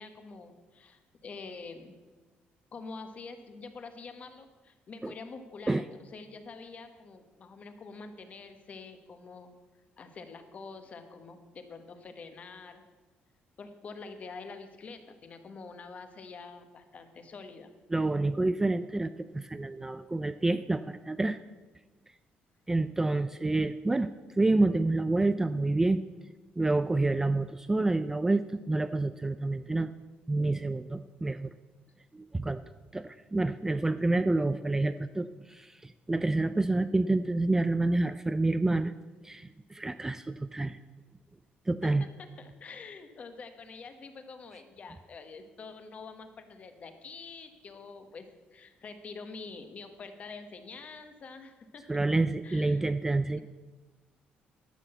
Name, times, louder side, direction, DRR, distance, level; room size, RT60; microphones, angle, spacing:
voice 1, 0.0-2.0 2.7-9.5 10.0-12.8 13.6-17.7 41.8-41.9 42.4-51.8 52.4-52.9 53.3-53.4, left 4 dB, 40° left, 8 dB, 1.3 m, -46 dB
voice 2, 17.9-21.4 22.7-24.1 24.4-26.0 26.6-29.9 30.3-31.5 32.1-32.6 32.9-38.9 39.2-40.8 41.7-42.0 51.9-53.4, right 2 dB, 10° right, 11 dB, 0.3 m, -28 dB
11.5 x 6.3 x 7.9 m, 1.2 s
cardioid pair, 135°, 4 cm